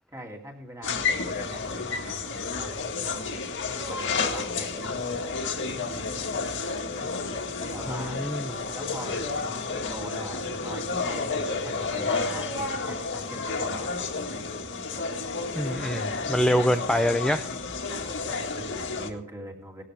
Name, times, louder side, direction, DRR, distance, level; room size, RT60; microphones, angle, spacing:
voice 1, 0.1-2.8 3.8-6.4 7.6-8.2 8.5-13.9 18.3-19.8, right 1 dB, 15° right, 1 dB, 2.5 m, -42 dB
sound 1, 0.8-19.1, left 4 dB, 55° left, 1.8 m, -31 dB
voice 2, 7.9-8.5 15.5-17.5, equal, 5° left, 7 dB, 0.5 m, -25 dB
19.0 x 12.5 x 3.4 m, 0.66 s
head